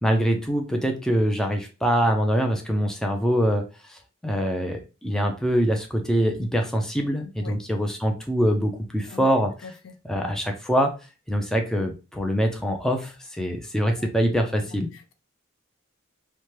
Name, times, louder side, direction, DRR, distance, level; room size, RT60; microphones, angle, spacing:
voice 1, 0.0-3.6 3.9-9.7 10.0-10.9 11.3-14.9, equal, 5° left, 0.4 m, -24 dB
voice 2, 9.6-9.9 14.0-14.1 14.5-15.1, left 5 dB, 65° left, 0.4 m, -42 dB
3.1 x 2.1 x 2.8 m
head